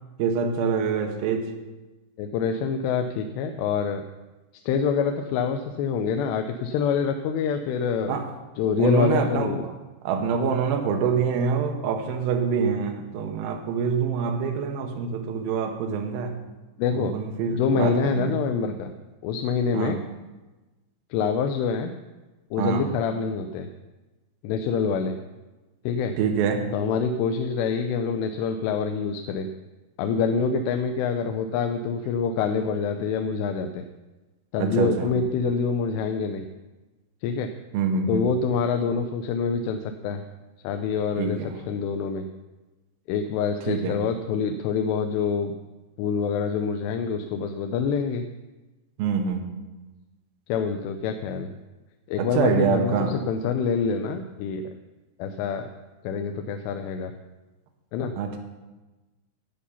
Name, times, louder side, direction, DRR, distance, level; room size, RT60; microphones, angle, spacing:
voice 1, 0.2-1.5 8.1-8.3 8.8-9.5 10.0-16.3 16.9-18.4 19.7-20.0 22.6-22.9 26.2-26.6 34.6-35.1 37.7-38.2 41.2-41.5 43.7-44.0 49.0-49.4 52.2-53.2 58.2-58.4, right 6 dB, 70° right, 3 dB, 2.6 m, -25 dB
voice 2, 2.2-4.0 4.7-8.2 8.6-9.7 16.8-17.2 17.5-18.9 19.2-20.0 21.1-21.9 22.5-23.7 24.4-25.2 25.9-26.1 26.7-29.5 30.0-33.8 34.5-36.5 37.2-37.5 38.1-40.2 40.6-41.4 41.7-42.3 43.1-45.5 46.0-48.2 50.5-51.5 52.1-54.7 55.2-55.7 56.0-57.1 57.9-58.1, left 6 dB, 90° left, 6 dB, 2.8 m, -26 dB
11.0 x 8.4 x 5.6 m, 1.2 s
omnidirectional pair, 4.8 m